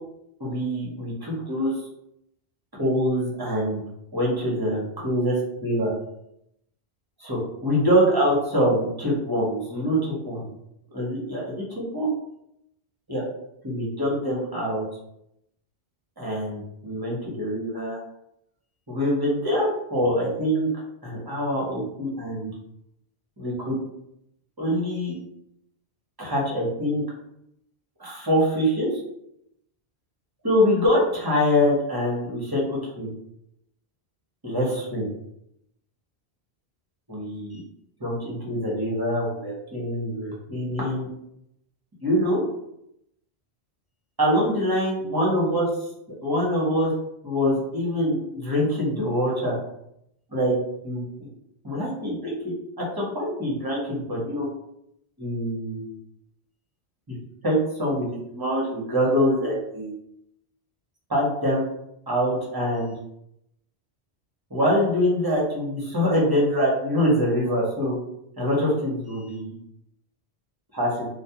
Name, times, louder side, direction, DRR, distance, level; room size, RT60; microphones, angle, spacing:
voice 1, 0.4-1.8 2.8-3.8 4.1-5.9 7.2-10.5 10.9-12.1 13.1-13.2 13.6-14.9 16.2-18.0 18.9-20.7 21.0-22.5 23.4-23.8 24.6-25.2 26.2-27.0 28.0-29.0 30.4-33.1 34.4-35.1 37.1-37.6 38.0-41.1 42.0-42.4 44.2-45.7 46.2-46.9 47.2-49.5 50.3-50.6 50.8-51.0 51.6-52.4 52.8-54.5 55.2-55.9 57.1-57.2 57.4-59.9 61.1-61.6 62.1-62.9 64.5-68.0 68.4-69.5 70.7-71.1, equal, 25° right, -5 dB, 0.6 m, -24 dB
2.2 x 2.1 x 2.7 m, 0.78 s
omnidirectional pair, 1.1 m